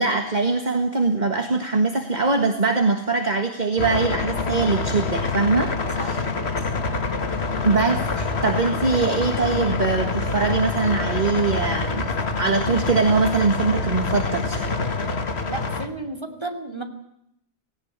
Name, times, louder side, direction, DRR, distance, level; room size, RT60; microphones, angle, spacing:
voice 1, 0.0-6.2 7.6-12.1 12.4-14.7, right 3 dB, 40° right, 5 dB, 1.8 m, -22 dB
sound 1, 3.8-15.9, left 3 dB, 70° left, 2.0 m, -26 dB
voice 2, 15.5-16.8, right 2 dB, 25° right, 5 dB, 3.0 m, -32 dB
18.0 x 18.0 x 9.7 m, 0.77 s
omnidirectional pair, 1.1 m